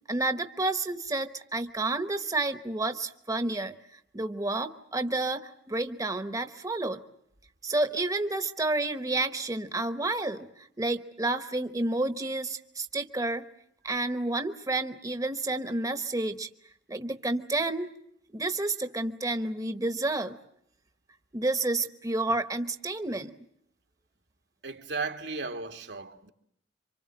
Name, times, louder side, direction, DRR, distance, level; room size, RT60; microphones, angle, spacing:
voice 1, 0.1-3.7 4.1-7.0 7.6-13.4 13.8-16.5 16.9-17.9 18.3-20.4 21.3-23.3, right 2 dB, 20° right, 1.0 m, -30 dB
voice 2, 24.6-26.3, right 4 dB, 80° right, 1.9 m, -35 dB
28.0 x 25.5 x 7.4 m
head